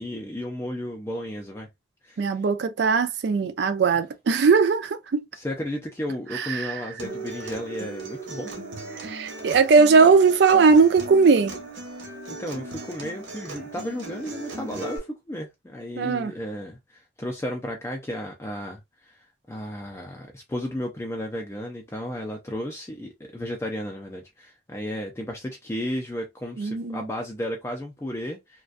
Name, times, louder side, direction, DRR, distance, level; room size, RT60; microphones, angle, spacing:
voice 1, 0.0-1.7 2.0-2.4 5.3-8.5 12.3-28.6, left 1 dB, 15° left, 0.4 m, -34 dB
voice 2, 2.2-5.2 6.3-6.8 9.0-11.5 16.0-16.3 26.6-27.0, right 5 dB, 65° right, 0.4 m, -19 dB
Acoustic guitar, 7.0-15.0, right 2 dB, 80° right, 0.8 m, -37 dB
2.4 x 2.2 x 2.4 m
head